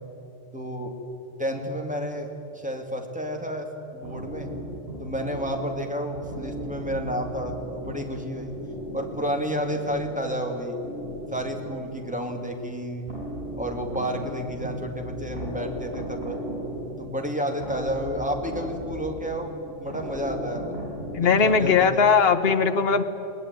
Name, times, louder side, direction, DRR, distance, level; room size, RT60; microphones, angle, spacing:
voice 1, 0.5-1.0 1.4-4.6 5.0-8.6 8.9-10.8 11.3-13.1 13.5-16.4 17.0-20.8 21.2-22.0, equal, 5° right, 2 dB, 2.6 m, -31 dB
sound 1, 4.0-22.1, equal, 55° right, 7.6 m, -37 dB
voice 2, 21.1-23.1, left 5 dB, 55° left, 8 dB, 1.3 m, -19 dB
22.0 x 19.5 x 9.7 m, 2.8 s
omnidirectional pair, 1.3 m